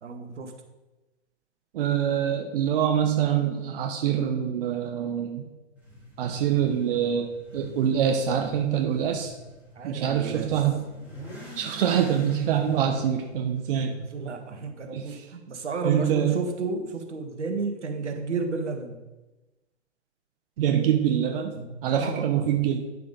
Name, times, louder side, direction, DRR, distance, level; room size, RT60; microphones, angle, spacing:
voice 1, 0.0-0.5 9.7-10.6 13.9-19.0 21.6-22.5, right 4 dB, 75° right, 5 dB, 1.7 m, -32 dB
voice 2, 1.7-5.5 6.2-9.3 9.8-10.8 11.6-13.9 14.9-15.1 15.8-16.4 20.6-21.5 21.8-22.9, right 9 dB, 50° right, 4 dB, 1.2 m, -25 dB
Motorcycle / Accelerating revving vroom, 5.8-14.6, equal, 5° right, 3.7 m, -44 dB
9.9 x 6.8 x 5.2 m, 1.1 s
hypercardioid pair, 120°, 35 cm